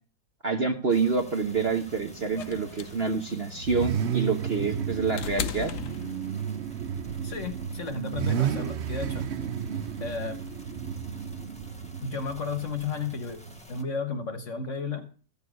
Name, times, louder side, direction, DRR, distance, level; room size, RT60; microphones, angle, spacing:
voice 1, 0.4-5.7, right 4 dB, 40° right, 4 dB, 1.0 m, -27 dB
sound 1, 0.9-13.8, left 1 dB, 5° left, 1.6 m, -49 dB
Car / Idling / Accelerating revving vroom, 1.5-13.6, right 8 dB, 60° right, 0.7 m, -33 dB
sound 2, 2.4-6.6 7.9-8.0, left 9 dB, 65° left, 1.3 m, -37 dB
voice 2, 7.2-9.3 10.0-10.4 12.0-13.4 13.7-15.1, left 4 dB, 45° left, 8 dB, 1.5 m, -33 dB
15.0 x 7.0 x 6.3 m, 0.40 s
omnidirectional pair, 2.0 m